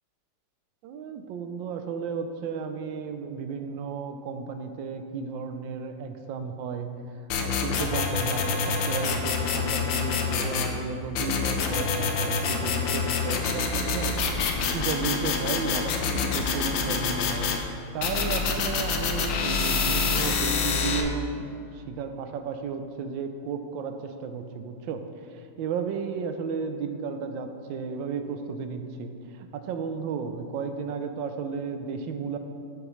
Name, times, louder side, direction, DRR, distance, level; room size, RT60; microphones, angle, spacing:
voice 1, 0.8-6.9 7.4-14.1 14.6-17.5 17.9-32.4, right 5 dB, 90° right, 7 dB, 1.3 m, -33 dB
sound 1, 7.3-10.7 11.1-17.6 18.0-21.0, left 5 dB, 80° left, 1.4 m, -27 dB
9.5 x 7.1 x 3.1 m, 2.5 s
omnidirectional pair, 2.0 m